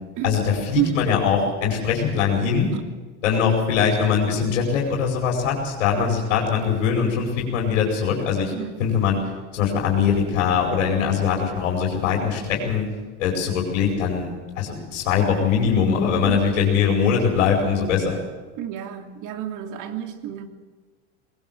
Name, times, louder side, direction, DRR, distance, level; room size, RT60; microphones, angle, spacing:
voice 1, 0.2-2.7 3.2-8.5 8.8-9.2 9.5-12.8 13.2-14.3 14.5-18.2, left 6 dB, 85° left, 0 dB, 5.0 m, -22 dB
voice 2, 16.2-16.6 18.6-20.5, right 12 dB, 55° right, 6 dB, 2.9 m, -29 dB
20.5 x 19.0 x 7.5 m, 1.4 s
hypercardioid pair, 100°, 36 cm